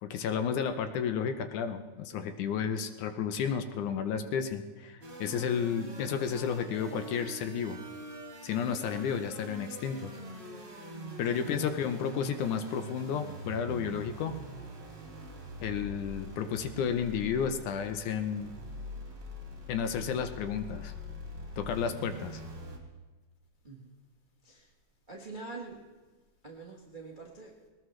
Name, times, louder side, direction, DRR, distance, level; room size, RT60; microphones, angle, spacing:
voice 1, 0.0-7.8 8.4-10.2 11.2-14.3 15.6-18.5 19.7-20.9 21.6-22.4, left 7 dB, 75° left, 8 dB, 2.2 m, -32 dB
sound 1, 5.0-22.8, right 1 dB, 25° right, 1.9 m, -44 dB
voice 2, 11.2-11.7 23.6-23.9 24.4-24.7 25.1-25.8 26.4-27.5, right 3 dB, 70° right, -2 dB, 0.4 m, -45 dB
20.5 x 19.0 x 3.2 m, 1.3 s
omnidirectional pair, 3.8 m